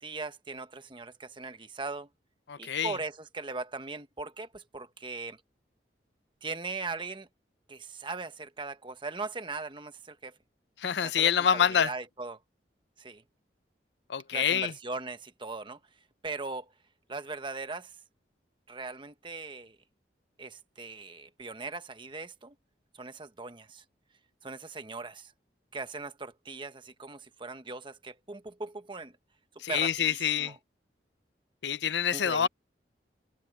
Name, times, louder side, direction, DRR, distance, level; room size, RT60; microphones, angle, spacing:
voice 1, 0.0-2.1 2.6-5.4 6.4-7.3 7.7-10.4 11.0-12.4 13.0-13.2 14.3-15.8 16.2-16.7 17.1-18.0 18.7-19.8 20.4-22.6 22.9-23.8 24.4-25.3 25.7-29.2 29.7-30.5 32.1-32.5, right 3 dB, 30° right, 1.1 m, -39 dB
voice 2, 2.5-3.0 10.8-11.9 14.1-14.7 29.6-30.6 31.6-32.5, left 8 dB, 80° left, 0.5 m, -26 dB
head